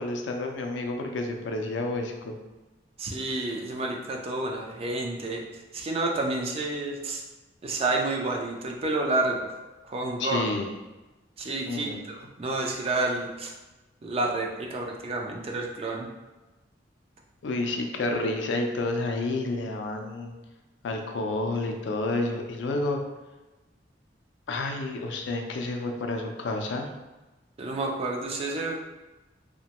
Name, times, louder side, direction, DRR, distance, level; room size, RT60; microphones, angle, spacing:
voice 1, 0.0-2.4 10.2-10.7 11.7-12.0 17.4-20.3 20.8-23.0 24.5-26.9, left 2 dB, 70° left, 3 dB, 0.4 m, -30 dB
voice 2, 3.0-7.2 7.6-9.6 9.8-10.5 11.4-13.5 14.0-16.1 27.6-28.8, right 2 dB, 35° right, 1 dB, 0.4 m, -30 dB
2.9 x 2.1 x 2.8 m, 1.1 s
head